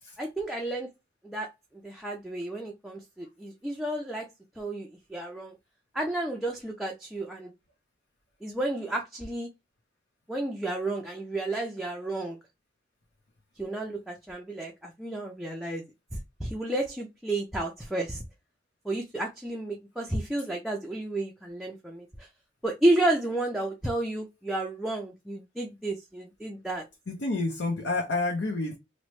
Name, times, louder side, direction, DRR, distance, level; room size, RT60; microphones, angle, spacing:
voice 1, 0.2-0.9 1.2-1.5 1.8-4.3 4.6-5.5 5.9-7.5 8.4-9.5 10.3-12.4 13.6-15.8 16.4-18.2 18.9-22.3 22.6-26.8, right 1 dB, ahead, 0.4 m, -31 dB
voice 2, 27.1-28.8, left 2 dB, 70° left, 0.6 m, -29 dB
3.0 x 2.0 x 3.0 m
head